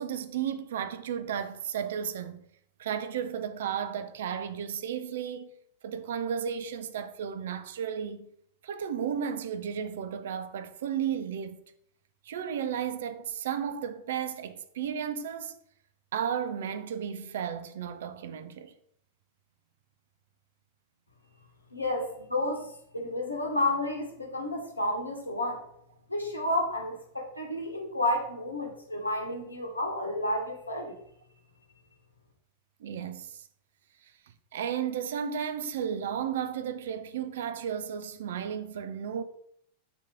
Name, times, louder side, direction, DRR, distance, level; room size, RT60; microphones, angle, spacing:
voice 1, 0.0-2.5 2.8-5.5 5.8-8.3 8.6-11.6 12.3-15.6 16.1-18.7 32.8-33.4 34.5-39.2, right 8 dB, 60° right, 0.4 m, -33 dB
voice 2, 21.7-22.0 22.3-25.6 26.1-31.0, left 1 dB, 85° left, 0.9 m, -31 dB
4.2 x 2.9 x 3.4 m
figure-of-eight pair, 90°, 0 cm